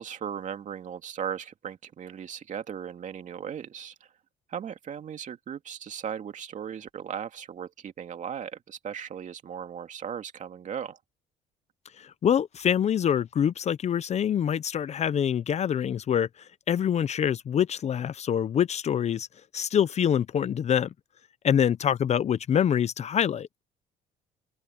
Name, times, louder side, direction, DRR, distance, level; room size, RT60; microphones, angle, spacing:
voice 1, 0.0-3.9 4.5-11.0, right 8 dB, 45° right, 2.5 m, -37 dB
voice 2, 12.0-19.3 19.5-20.9 21.4-23.5, left 9 dB, 40° left, 0.6 m, -25 dB
cardioid pair, 110°, 17 cm